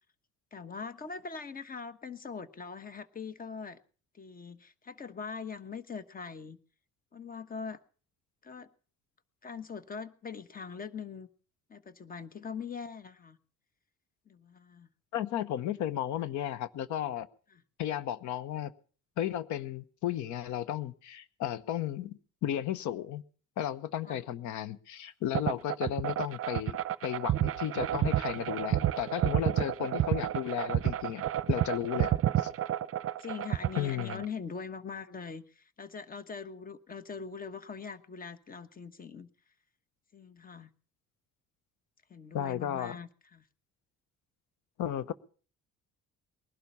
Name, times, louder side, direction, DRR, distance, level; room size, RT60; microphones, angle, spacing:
voice 1, 0.5-3.8 4.1-6.6 7.1-7.8 8.4-8.7 9.4-11.3 11.7-13.4 14.3-14.9 24.0-24.2 32.0-32.2 33.2-39.3 40.1-40.7 42.1-43.4, left 5 dB, 30° left, 13 dB, 1.2 m, -42 dB
voice 2, 15.1-17.3 17.8-18.7 19.2-23.2 23.6-26.8 27.0-31.2 31.5-32.1 33.8-34.2 42.3-43.0 44.8-45.1, left 11 dB, 75° left, 16 dB, 1.0 m, -34 dB
sound 1, 25.3-34.3, right 12 dB, 50° right, 0.7 m, -30 dB
20.5 x 12.0 x 5.5 m, 0.42 s
cardioid pair, 110°, 30 cm